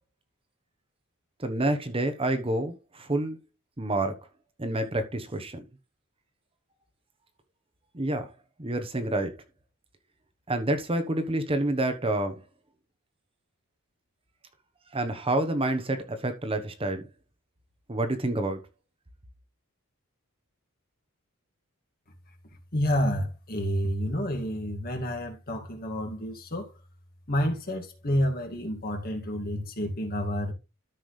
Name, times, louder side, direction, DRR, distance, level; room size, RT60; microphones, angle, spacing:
voice 1, 1.4-3.4 3.8-4.2 4.6-5.6 7.9-8.3 8.6-9.3 10.5-12.4 14.9-17.0 17.9-18.6, right 1 dB, 25° right, 1.1 m, -28 dB
voice 2, 22.7-26.7 27.3-30.5, equal, 45° left, 2.1 m, -29 dB
13.0 x 6.1 x 3.2 m
head